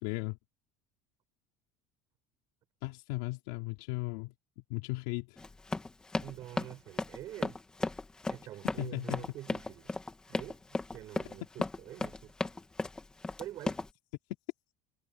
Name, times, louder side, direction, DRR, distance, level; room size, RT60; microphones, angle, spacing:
voice 1, 0.0-0.4 2.8-4.3 4.7-5.4 8.8-9.2, left 20 dB, 80° left, 4.0 m, -36 dB
Run, 5.4-13.9, left 3 dB, 10° left, 1.7 m, -35 dB
voice 2, 6.2-7.6 8.3-9.9 10.3-12.4 13.4-13.8, right 14 dB, 40° right, 6.1 m, -46 dB
cardioid pair, 175°, 8 cm